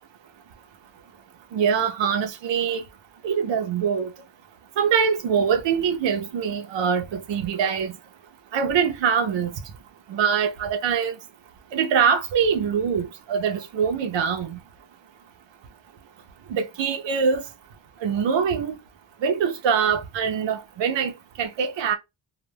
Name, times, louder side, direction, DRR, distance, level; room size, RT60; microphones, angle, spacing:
voice 1, 1.5-2.8 3.2-4.1 4.8-8.0 8.5-9.5 10.1-11.1 11.7-14.6 16.5-17.4 18.0-18.8 19.2-21.1 21.4-22.0, right 7 dB, 75° right, 0.6 m, -23 dB
2.2 x 2.2 x 3.1 m
wide cardioid pair, 150°, 45 cm